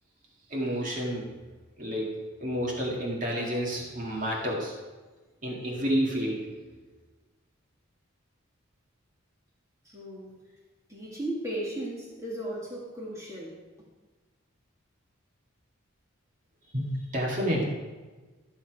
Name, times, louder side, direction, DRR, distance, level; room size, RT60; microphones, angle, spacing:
voice 1, 0.5-1.3 1.8-2.1 2.4-4.7 5.4-6.4 16.7-17.6, equal, 40° right, -2 dB, 2.0 m, -29 dB
voice 2, 9.8-10.4 10.9-13.6, right 1 dB, 15° right, -5 dB, 2.0 m, -36 dB
13.0 x 7.1 x 4.8 m, 1.3 s
head